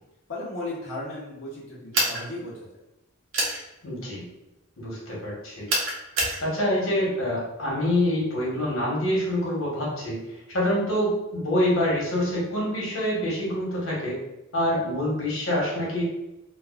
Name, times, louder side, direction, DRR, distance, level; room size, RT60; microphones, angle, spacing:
voice 1, 0.3-2.7, left 2 dB, 70° left, -6 dB, 0.7 m, -35 dB
sound 1, 1.9-2.2 3.3-3.6 5.7-6.4, right 1 dB, 80° right, 0.7 m, -25 dB
voice 2, 3.8-4.2 4.8-5.7 6.4-14.2 14.5-16.1, left 1 dB, 90° left, -5 dB, 1.0 m, -26 dB
2.3 x 2.3 x 2.3 m, 0.95 s
head